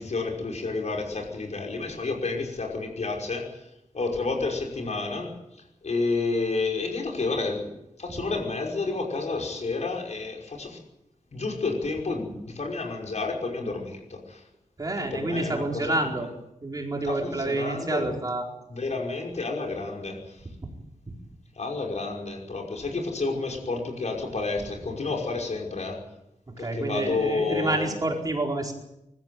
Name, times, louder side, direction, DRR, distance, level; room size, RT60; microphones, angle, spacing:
voice 1, 0.0-3.5 3.9-5.3 5.8-7.7 8.0-10.8 11.3-14.4 15.0-16.3 17.0-18.2 18.7-20.4 21.6-26.0 26.6-28.1, left 3 dB, 60° left, 0 dB, 5.7 m, -30 dB
voice 2, 14.8-16.3 16.6-18.4 20.6-20.7 26.6-28.7, right 2 dB, 30° right, 0 dB, 4.6 m, -28 dB
24.5 x 14.5 x 9.4 m, 0.87 s
wide cardioid pair, 130°, 13 cm